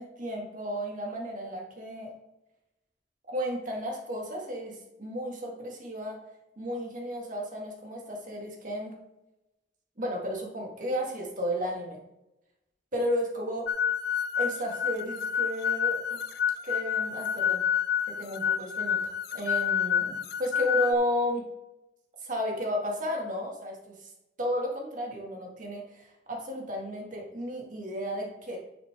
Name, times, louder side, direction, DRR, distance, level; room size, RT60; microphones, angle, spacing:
voice 1, 0.0-2.1 3.3-6.2 6.6-8.9 10.0-12.0 12.9-13.7 14.4-16.3 16.6-17.6 18.1-21.5 22.2-24.1 24.4-28.6, equal, 45° right, 0 dB, 2.3 m, -33 dB
sound 1, 13.7-20.9, left 8 dB, 60° left, 0.4 m, -28 dB
10.5 x 6.5 x 3.7 m, 0.94 s
head